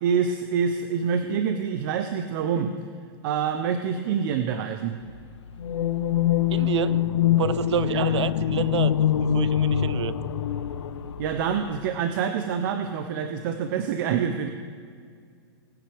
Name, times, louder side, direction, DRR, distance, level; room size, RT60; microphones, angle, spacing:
voice 1, 0.0-2.7 3.2-5.0 7.9-8.1 11.2-14.5, right 7 dB, 50° right, 7 dB, 0.8 m, -26 dB
sound 1, 5.6-11.6, left 10 dB, 85° left, 0.7 m, -24 dB
voice 2, 6.5-7.0 7.4-10.2, right 9 dB, 85° right, 17 dB, 0.6 m, -29 dB
20.5 x 9.4 x 3.5 m, 2.2 s
hypercardioid pair, 140°, 14 cm